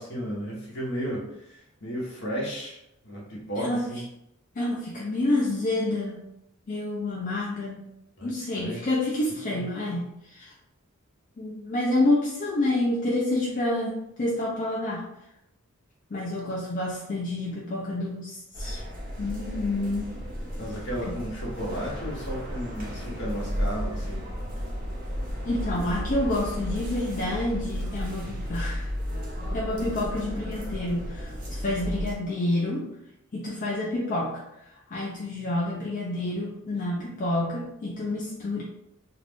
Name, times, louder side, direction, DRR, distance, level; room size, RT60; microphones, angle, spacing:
voice 1, 0.0-4.0 8.2-8.8 20.6-24.2, equal, 60° left, -3 dB, 1.0 m, -34 dB
voice 2, 3.6-3.9 4.6-6.2 6.7-7.9 8.2-10.5 11.4-15.1 16.1-18.8 19.2-20.1 25.4-28.9 29.5-32.9 33.3-34.4 34.7-38.6, left 1 dB, 40° left, -4 dB, 0.4 m, -28 dB
sound 1, 18.5-32.1, equal, 45° right, 0.7 m, -33 dB
2.5 x 2.4 x 3.4 m, 0.82 s
head